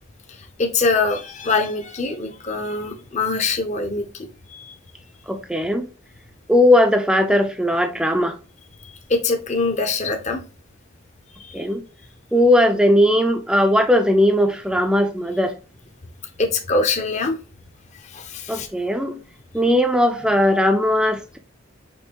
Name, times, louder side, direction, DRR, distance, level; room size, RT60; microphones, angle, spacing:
voice 1, 0.6-4.0 4.5-4.7 8.8-10.4 11.5-11.7 16.4-17.4 18.0-18.7, left 3 dB, 35° left, 0.7 m, -23 dB
voice 2, 5.3-5.9 6.5-8.3 11.5-11.8 12.3-15.5 18.5-19.2 19.5-21.4, left 1 dB, 5° right, 0.4 m, -18 dB
5.3 x 3.0 x 2.9 m
head